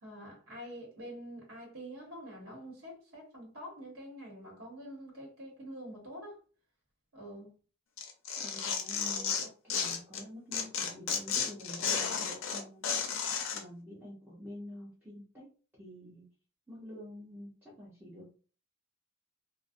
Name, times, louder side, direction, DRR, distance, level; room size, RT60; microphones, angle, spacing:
voice 1, 0.0-6.4 7.1-7.6 9.0-9.5, equal, 90° right, 1.0 m, -46 dB
Tearing, 8.0-10.2 10.5-13.6, left 6 dB, 65° left, 0.5 m, -33 dB
voice 2, 8.4-9.3 9.6-12.8 13.5-15.5 15.7-16.3 16.7-18.4, equal, 10° right, 0.7 m, -48 dB
2.4 x 2.0 x 2.5 m
head